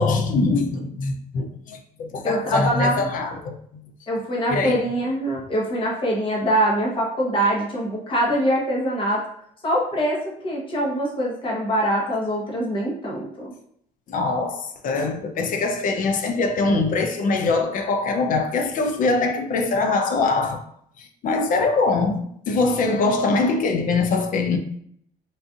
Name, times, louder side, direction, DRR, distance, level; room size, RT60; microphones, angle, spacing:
voice 1, 0.0-3.5 4.5-4.8 14.1-20.7 21.0-24.6, left 3 dB, 55° left, 0.5 m, -23 dB
voice 2, 2.2-3.1 4.1-9.2 9.6-13.5, equal, 30° left, 1.0 m, -23 dB
3.9 x 2.5 x 2.4 m
cardioid pair, 110°, 17 cm